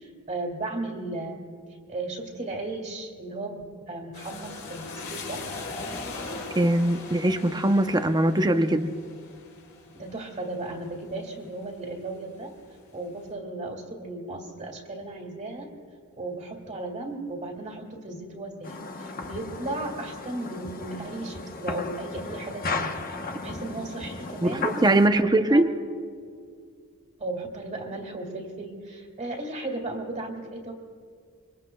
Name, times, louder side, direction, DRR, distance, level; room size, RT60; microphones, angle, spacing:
voice 1, 0.0-1.4 1.9-5.4 9.9-12.5 12.9-15.7 16.2-24.7 25.0-25.2 25.5-25.6 27.2-30.7, right 2 dB, 35° right, 0 dB, 2.0 m, -35 dB
sound 1, 4.1-11.8 12.3-13.0, left 3 dB, 65° left, 3.5 m, -40 dB
voice 2, 6.6-8.9 24.4-25.7, right 1 dB, 20° right, 8 dB, 0.6 m, -21 dB
sound 2, 18.6-25.1, left 3 dB, 40° left, 1.0 m, -35 dB
26.5 x 24.0 x 2.3 m, 2.1 s
head